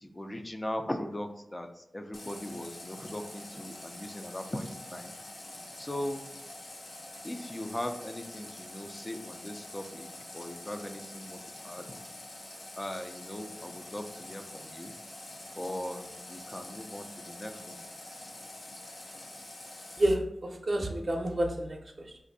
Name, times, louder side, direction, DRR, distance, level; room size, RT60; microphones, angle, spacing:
voice 1, 0.0-5.1 5.8-6.3 7.2-10.1 10.3-11.4 11.6-11.9 12.8-14.9 15.5-17.8, left 1 dB, 25° left, 6 dB, 0.4 m, -39 dB
Water tap faucet, 2.1-20.1, left 1 dB, 75° left, 0.6 m, -46 dB
voice 2, 20.0-22.2, right 1 dB, 55° right, 2 dB, 0.6 m, -30 dB
2.5 x 2.5 x 4.0 m, 0.83 s
wide cardioid pair, 80°, 0 cm